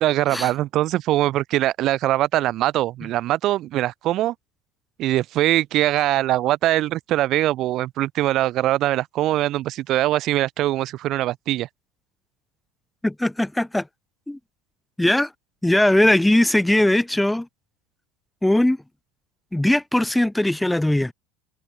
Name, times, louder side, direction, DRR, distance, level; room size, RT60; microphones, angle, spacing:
voice 1, 0.0-4.3 5.0-11.7, right 15 dB, 50° right, 0.5 m, -22 dB
voice 2, 13.0-13.8 14.3-14.4 15.0-15.3 15.6-17.5 18.4-18.8 19.5-21.1, left 1 dB, 5° left, 0.4 m, -19 dB
hypercardioid pair, 85°, 0 cm